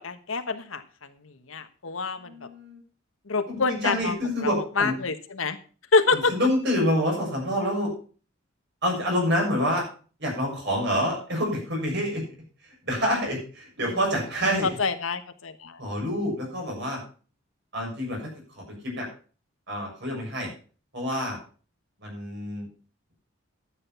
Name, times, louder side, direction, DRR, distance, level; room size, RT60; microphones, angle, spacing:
voice 1, 0.0-2.3 3.3-5.6 5.9-6.3 13.8-14.0 14.6-15.8, left 4 dB, 90° left, 9 dB, 1.3 m, -27 dB
voice 2, 2.2-2.8 3.5-4.9 6.1-7.9 8.8-9.8 10.2-12.2 12.8-14.7 15.8-17.0 17.7-18.2 18.5-19.1 19.7-20.5 20.9-21.4 22.0-22.7, equal, 60° right, -1 dB, 6.8 m, -27 dB
11.5 x 8.7 x 5.7 m, 0.39 s
head